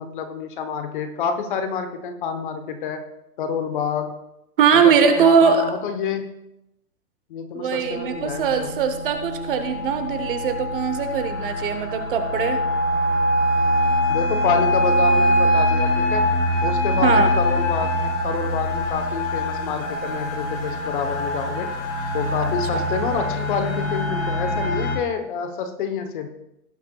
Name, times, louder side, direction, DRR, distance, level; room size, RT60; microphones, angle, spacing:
voice 1, 0.0-3.1 3.4-4.1 4.7-6.3 7.3-8.7 14.1-16.3 16.6-21.7 22.1-26.3, left 6 dB, 30° left, 8 dB, 0.9 m, -28 dB
voice 2, 4.6-5.7 7.5-12.6 17.0-17.3 22.7-22.9, right 7 dB, 35° right, 8 dB, 0.9 m, -20 dB
sound 1, 7.8-25.0, equal, 55° left, 3.2 m, -23 dB
18.0 x 8.1 x 2.3 m, 0.86 s
hypercardioid pair, 150°, 48 cm